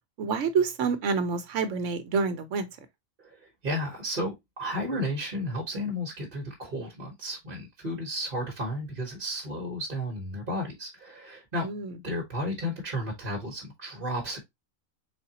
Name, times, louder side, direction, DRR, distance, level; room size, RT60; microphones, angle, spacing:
voice 1, 0.2-2.7 11.6-12.0, right 5 dB, 70° right, 1.1 m, -27 dB
voice 2, 3.2-11.7 12.0-14.4, equal, 40° right, 1.3 m, -33 dB
4.1 x 3.8 x 2.8 m
omnidirectional pair, 1.4 m